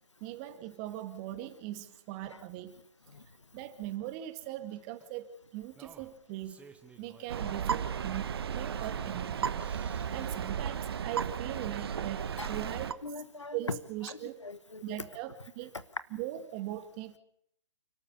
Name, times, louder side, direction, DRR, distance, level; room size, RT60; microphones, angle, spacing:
voice 1, 0.2-2.7 3.5-6.6 7.0-9.6 10.1-13.0 13.5-14.4 14.8-15.7 16.1-17.1, right 13 dB, 30° right, 9 dB, 1.9 m, -40 dB
Singing, 3.9-4.0 5.0-5.1 5.7-7.3 7.8-7.9 8.3-10.9 11.7-11.8, right 5 dB, 10° right, 1.4 m, -55 dB
sound 1, 7.3-12.9, right 7 dB, 55° right, 1.1 m, -34 dB
voice 2, 13.0-13.8 14.1-14.2 14.4-15.0, left 3 dB, 85° left, 14 dB, 1.2 m, -40 dB
29.0 x 13.0 x 6.9 m, 0.75 s
figure-of-eight pair, 125°, 15 cm